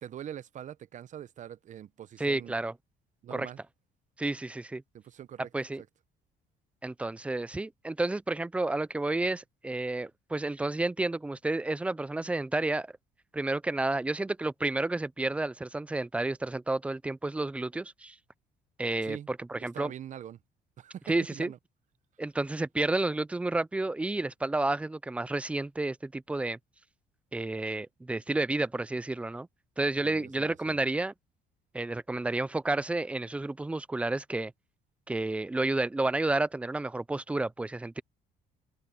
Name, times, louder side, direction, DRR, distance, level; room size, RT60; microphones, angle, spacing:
voice 1, 0.0-2.5 3.2-3.6 4.9-5.5 19.0-19.3 19.6-20.4 20.8-21.6 30.0-30.8, right 10 dB, 45° right, 0.8 m, -43 dB
voice 2, 2.2-2.7 3.3-3.5 4.2-4.8 5.5-5.8 6.8-12.9 13.3-18.2 18.8-19.9 21.1-21.5 22.2-26.6 27.3-29.5 29.8-31.1 31.7-34.5 35.1-38.0, right 2 dB, 5° right, 0.3 m, -31 dB
cardioid pair, 110°, 17 cm